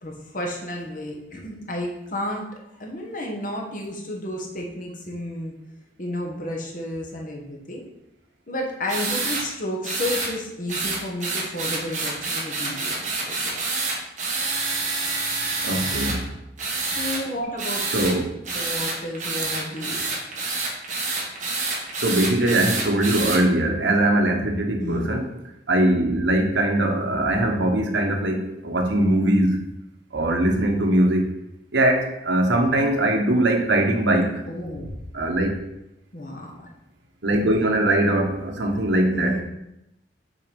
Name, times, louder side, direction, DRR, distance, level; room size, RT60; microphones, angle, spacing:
voice 1, 0.0-2.4 2.8-5.5 6.0-7.8 8.5-13.6 15.7-16.2 16.7-18.1 18.5-20.1 24.8-25.2 34.5-34.9 36.1-36.5 39.1-39.4, left 1 dB, 50° left, 0 dB, 1.4 m, -32 dB
sound 1, 8.9-9.4 9.8-10.3 10.7-16.2 16.6-17.2 17.6-18.1 18.5-23.4, right 3 dB, 40° right, 1.7 m, -27 dB
voice 2, 15.6-16.2 17.9-18.2 22.0-25.3 25.7-29.6 30.1-31.3 31.7-34.4 35.1-35.6 37.2-39.4, right 1 dB, 85° right, 2 dB, 1.2 m, -21 dB
6.4 x 4.2 x 5.3 m, 0.85 s
head